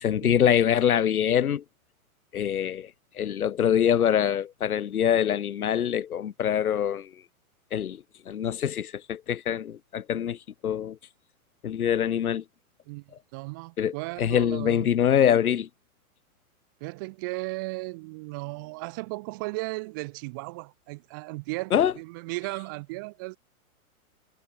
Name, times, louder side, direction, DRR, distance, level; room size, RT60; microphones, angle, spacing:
voice 1, 0.0-1.6 2.3-2.9 3.2-7.1 7.7-10.4 10.6-11.0 11.6-12.4 13.8-15.7 21.7-21.9, left 9 dB, 75° left, 2.9 m, -24 dB
voice 2, 13.3-14.9 16.8-23.4, right 26 dB, 15° right, 1.0 m, -35 dB
hypercardioid pair, 180°, 44 cm